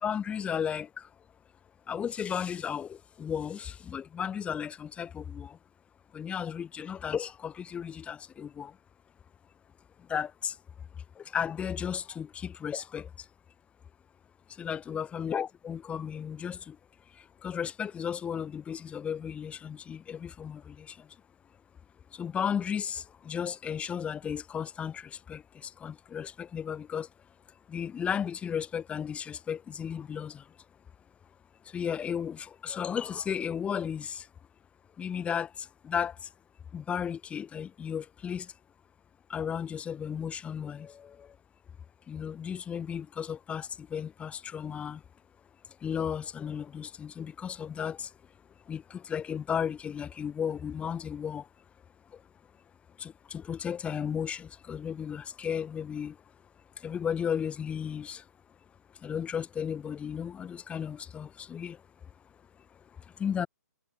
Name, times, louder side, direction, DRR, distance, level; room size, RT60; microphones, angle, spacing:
voice 1, 0.0-1.1 1.9-5.6 6.1-8.7 10.1-10.6 11.2-13.3 14.6-16.8 17.4-21.0 22.1-27.1 27.7-30.4 31.7-34.3 35.0-36.3 36.7-38.5 39.3-41.3 42.1-45.0 45.8-48.1 48.7-51.5 53.0-56.1 56.8-58.2 59.0-61.8 63.2-63.5, left 8 dB, 10° left, 2.4 m, -34 dB
figure-of-eight pair, 130°, 9 cm